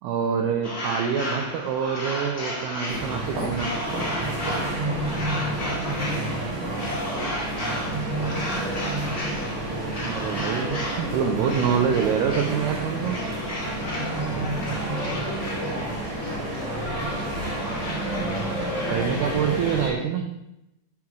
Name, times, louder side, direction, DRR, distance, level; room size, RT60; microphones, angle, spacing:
voice 1, 0.0-3.7 10.0-13.2 18.9-20.3, right 7 dB, 90° right, 3 dB, 2.3 m, -26 dB
sound 1, 0.6-19.9, left 1 dB, 30° left, 1.4 m, -33 dB
sound 2, 2.9-19.9, right 2 dB, 60° right, 3.1 m, -30 dB
voice 2, 4.7-7.0 13.7-17.6 18.1-19.4, left 4 dB, 85° left, 3 dB, 2.9 m, -40 dB
6.9 x 6.5 x 3.1 m, 0.86 s
omnidirectional pair, 5.4 m